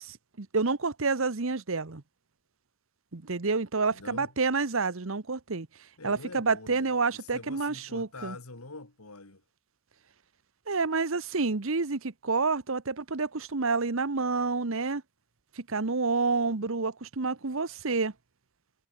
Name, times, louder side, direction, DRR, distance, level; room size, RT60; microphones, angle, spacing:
voice 1, 0.0-2.0 3.1-5.7 6.0-8.4 10.7-15.0 15.6-18.1, right 4 dB, 65° right, 1.0 m, -29 dB
voice 2, 3.9-4.3 6.0-9.4, left 3 dB, 85° left, 2.7 m, -45 dB
head